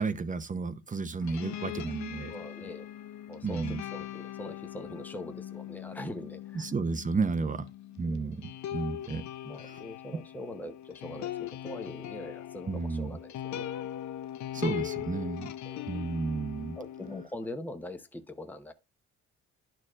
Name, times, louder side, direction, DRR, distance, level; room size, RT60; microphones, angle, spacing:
voice 1, 0.0-2.3 3.4-3.8 6.5-7.7 8.0-9.2 9.6-9.8 12.7-13.1 14.5-15.5 15.9-16.8, right 4 dB, 25° right, 0.7 m, -32 dB
sound 1, 1.2-17.3, left 12 dB, 65° left, 0.6 m, -40 dB
voice 2, 2.3-2.9 3.3-6.7 8.0-8.4 9.4-13.7 15.6-16.0 16.7-18.7, left 1 dB, 5° left, 0.8 m, -42 dB
11.0 x 4.5 x 2.4 m
cardioid pair, 90°, 30 cm